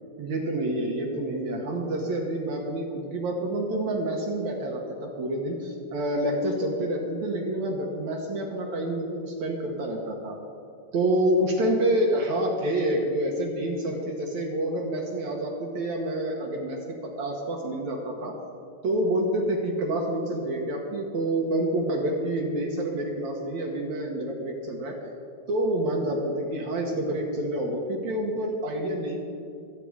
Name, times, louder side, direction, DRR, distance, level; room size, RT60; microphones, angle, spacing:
voice 1, 0.2-10.4 10.9-18.4 18.8-25.0 25.5-29.2, right 1 dB, 60° right, 1 dB, 2.2 m, -28 dB
24.5 x 8.7 x 4.9 m, 2.7 s
omnidirectional pair, 4.5 m